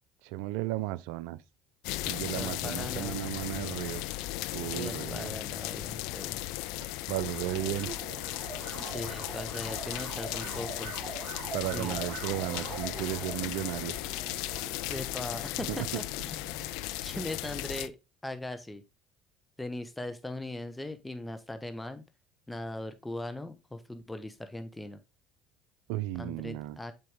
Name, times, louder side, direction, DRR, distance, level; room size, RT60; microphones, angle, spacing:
voice 1, 0.2-1.4 2.0-4.0 4.5-5.4 7.1-7.9 11.5-13.9 15.7-15.9 25.9-26.8, right 15 dB, 75° right, 0.5 m, -34 dB
sound 1, 1.8-17.9, left 17 dB, 70° left, 0.4 m, -36 dB
voice 2, 2.3-3.2 4.7-6.4 8.8-10.9 11.7-12.0 14.9-18.0 18.2-18.8 19.6-22.0 22.5-25.0 26.1-26.9, left 1 dB, 10° left, 1.0 m, -39 dB
sound 2, 7.2-16.9, right 5 dB, 55° right, 1.9 m, -44 dB
7.7 x 4.8 x 3.6 m
hypercardioid pair, 70°, 0 cm